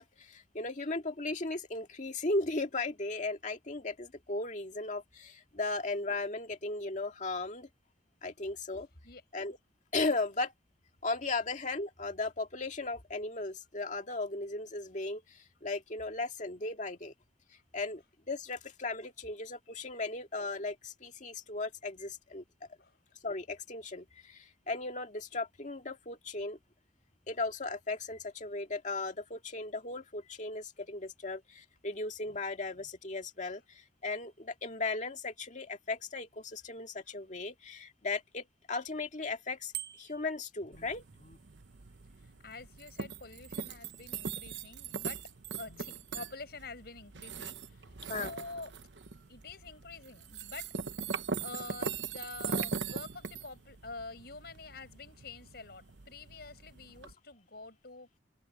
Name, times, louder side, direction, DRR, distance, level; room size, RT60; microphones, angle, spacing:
voice 1, 0.0-7.7 8.2-8.9 9.3-9.6 9.9-10.5 11.0-17.1 17.7-22.4 23.2-26.6 27.3-39.7 40.0-41.4 45.7-45.8 48.1-48.3, left 3 dB, 45° left, 2.1 m, -36 dB
Bicycle bell, 39.7-40.4, right 14 dB, 60° right, 1.7 m, -41 dB
sound 1, 40.7-57.1, right 5 dB, 80° right, 0.9 m, -41 dB
voice 2, 42.2-45.2 45.6-48.7 49.3-50.7 51.1-58.1, left 3 dB, 60° left, 6.0 m, -47 dB
open air
head